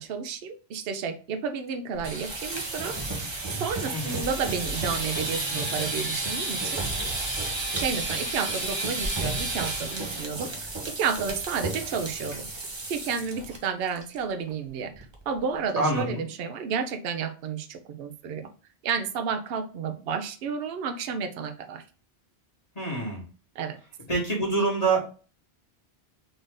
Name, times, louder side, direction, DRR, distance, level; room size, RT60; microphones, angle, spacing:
voice 1, 0.0-3.0 3.5-6.8 7.7-10.5 10.8-12.5 12.9-18.5 18.8-21.8 23.6-23.8, right 6 dB, 70° right, 8 dB, 0.8 m, -31 dB
sound 1, 2.0-13.6 13.9-14.2 14.5-14.6 14.9-15.4, right 2 dB, 30° right, 0.6 m, -32 dB
voice 2, 15.8-16.2 22.7-23.2 24.1-25.0, right 3 dB, 35° left, -3 dB, 1.2 m, -26 dB
3.8 x 2.6 x 3.4 m, 0.37 s
omnidirectional pair, 1.1 m